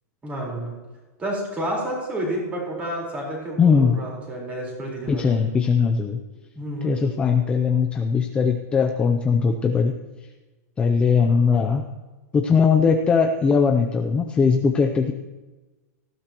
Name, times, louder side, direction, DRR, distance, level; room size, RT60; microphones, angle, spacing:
voice 1, 0.2-0.7 1.2-5.4 6.5-7.3 11.2-11.4, right 1 dB, 15° right, -2 dB, 4.3 m, -30 dB
voice 2, 3.6-4.0 5.1-6.2 6.8-9.9 10.8-11.9 12.3-15.1, left 5 dB, 10° left, 4 dB, 0.6 m, -20 dB
19.0 x 15.0 x 3.0 m, 1.2 s
supercardioid pair, 165°, 10 cm